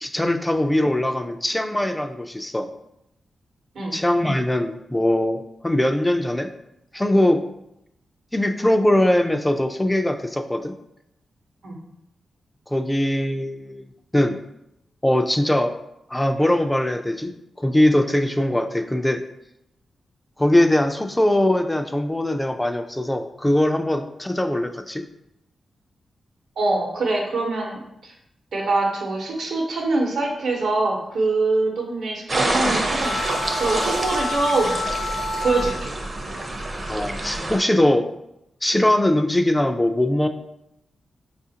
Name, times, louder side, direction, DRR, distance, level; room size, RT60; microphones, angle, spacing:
voice 1, 0.0-2.7 3.9-6.5 6.9-7.4 8.3-10.7 12.7-14.4 15.0-15.8 16.1-17.3 17.6-19.2 20.4-25.0 36.9-38.1 38.6-40.3, left 1 dB, 10° left, 6 dB, 0.3 m, -21 dB
voice 2, 26.6-28.1 28.5-34.7 35.4-35.9, right 3 dB, 75° right, 0 dB, 0.9 m, -24 dB
sound 1, 32.3-37.6, right 2 dB, 40° right, 0.6 m, -27 dB
sound 2, 33.0-36.1, left 2 dB, 85° left, 0.6 m, -29 dB
4.8 x 2.4 x 2.8 m, 0.82 s
cardioid pair, 80°, 0 cm